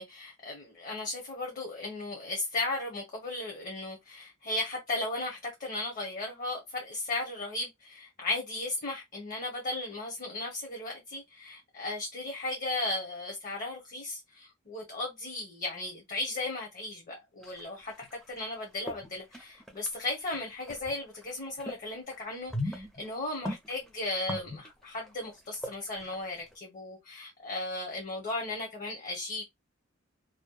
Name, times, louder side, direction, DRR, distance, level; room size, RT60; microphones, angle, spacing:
voice 1, 0.0-29.4, left 2 dB, 45° left, 0.8 m, -36 dB
sound 1, 17.4-18.5 18.9-21.8 22.1-26.5, left 1 dB, ahead, 0.5 m, -39 dB
2.6 x 2.1 x 2.2 m
head